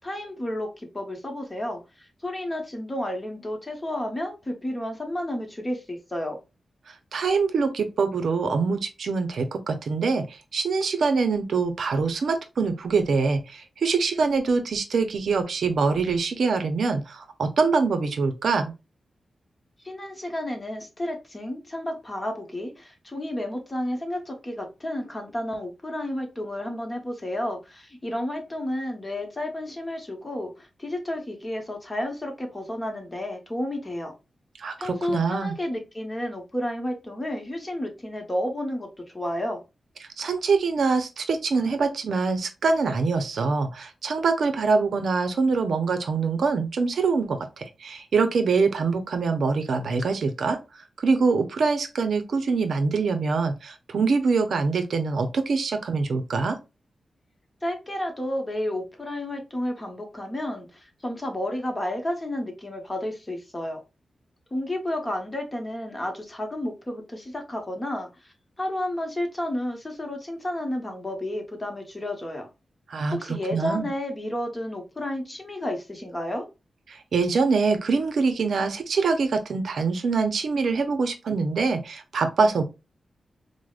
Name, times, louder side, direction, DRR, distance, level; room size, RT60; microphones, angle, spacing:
voice 1, 0.0-6.4 19.8-34.1 34.8-38.9 39.1-39.6 57.6-63.8 64.5-72.5 73.1-76.4, left 1 dB, 20° left, 0.9 m, -31 dB
voice 2, 6.9-18.7 34.6-35.5 40.2-50.6 51.0-56.6 72.9-73.9 76.9-82.6, right 4 dB, 75° right, 0.5 m, -24 dB
4.8 x 2.1 x 2.3 m
wide cardioid pair, 100°, 0 cm